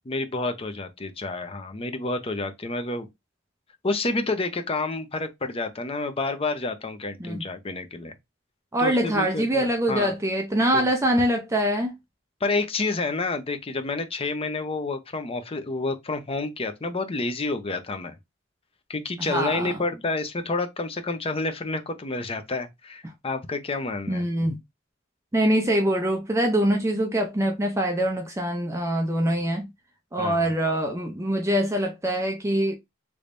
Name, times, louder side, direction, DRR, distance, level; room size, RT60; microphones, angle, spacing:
voice 1, 0.1-3.1 3.8-8.1 8.8-10.1 10.7-10.9 12.4-18.2 18.9-24.5 30.2-30.5, left 3 dB, 30° left, 0.6 m, -29 dB
voice 2, 8.7-11.9 19.2-19.7 24.1-24.6 25.3-29.7 30.1-32.7, right 1 dB, 15° right, 0.5 m, -24 dB
3.4 x 3.1 x 2.5 m
head